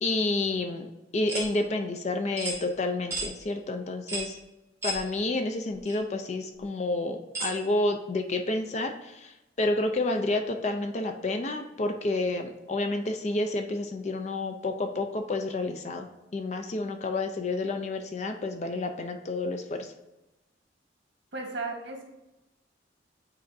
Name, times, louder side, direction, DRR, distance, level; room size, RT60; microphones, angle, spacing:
voice 1, 0.0-4.4 4.8-19.9, left 2 dB, 40° left, 5 dB, 0.4 m, -30 dB
sound 1, 1.3-1.5 2.4-2.6 3.1-3.3 4.1-4.3 4.8-5.0 5.9-6.0 7.3-7.6, right 2 dB, 15° right, 1.5 m, -32 dB
voice 2, 21.3-22.1, right 3 dB, 80° right, 2 dB, 1.3 m, -35 dB
9.2 x 4.2 x 2.6 m, 0.98 s
head